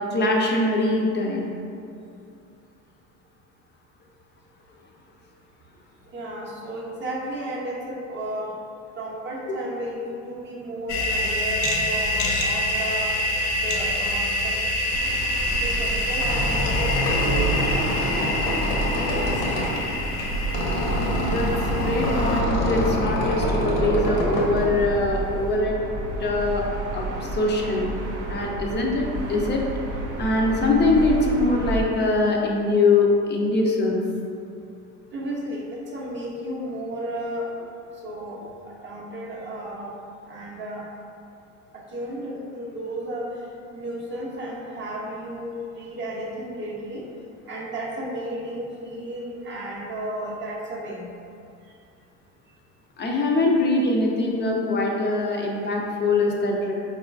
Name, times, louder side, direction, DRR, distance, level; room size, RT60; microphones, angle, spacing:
voice 1, 0.1-1.4 9.5-9.6 21.3-21.5 21.8-25.8 26.2-26.6 26.9-27.0 27.3-27.9 28.3-29.6 30.2-34.0 53.0-56.7, left 2 dB, 25° left, 0 dB, 0.5 m, -22 dB
voice 2, 6.1-8.6 9.0-13.1 13.6-14.6 15.5-18.8 19.1-19.6 35.1-37.7 37.9-40.0 40.2-40.9 41.7-47.1 47.5-51.1 51.6-51.8, right 1 dB, 30° right, -3 dB, 0.6 m, -33 dB
sound 1, 10.9-22.4, left 1 dB, 80° left, 0.6 m, -26 dB
sound 2, 14.9-31.8, right 2 dB, 70° right, 0.6 m, -31 dB
Squeak, 15.9-25.5, left 1 dB, 55° left, 0.9 m, -27 dB
4.2 x 2.4 x 2.3 m, 2.5 s
hypercardioid pair, 80°, 42 cm